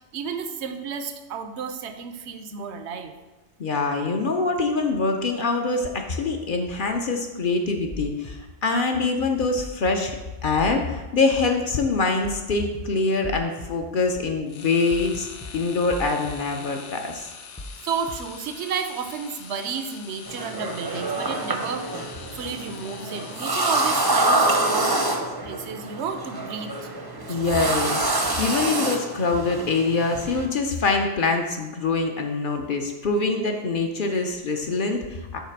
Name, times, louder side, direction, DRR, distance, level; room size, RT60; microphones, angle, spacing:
voice 1, 0.0-3.1 17.8-21.9 22.3-25.0 25.4-26.9 27.3-27.5, right 6 dB, 70° right, 8 dB, 0.9 m, -32 dB
voice 2, 3.6-10.2 10.4-15.3 15.5-17.3 27.3-28.1 28.4-35.4, left 3 dB, 55° left, 3 dB, 0.7 m, -24 dB
sound 1, 7.9-8.3 9.6-9.8 10.1-10.2 10.6-11.0 12.2-12.4 12.7-12.8 13.2-13.7 14.9-15.1 15.4-15.5 15.9-16.3 17.6-17.8 18.1-18.2, left 1 dB, 20° left, 0.4 m, -36 dB
sound 2, 14.5-24.6, left 6 dB, 80° left, 1.0 m, -43 dB
sound 3, 20.3-30.5, right 2 dB, 25° right, 0.6 m, -26 dB
5.8 x 4.0 x 5.8 m, 1.1 s
omnidirectional pair, 1.2 m